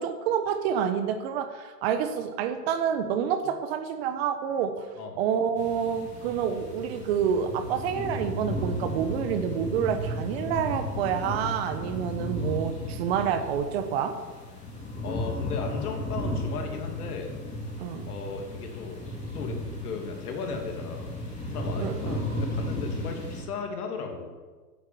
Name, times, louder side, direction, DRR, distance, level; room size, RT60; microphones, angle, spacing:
voice 1, 0.0-4.9 5.2-14.1 17.8-18.1 21.8-22.3, right 8 dB, 40° right, 8 dB, 1.2 m, -28 dB
sound 1, 5.6-23.4, left 1 dB, 15° left, 3.2 m, -34 dB
voice 2, 15.0-17.4 18.0-19.0 19.3-21.2 21.5-24.3, left 4 dB, 65° left, 3 dB, 2.8 m, -36 dB
10.0 x 8.7 x 7.7 m, 1.4 s
hypercardioid pair, 140°, 49 cm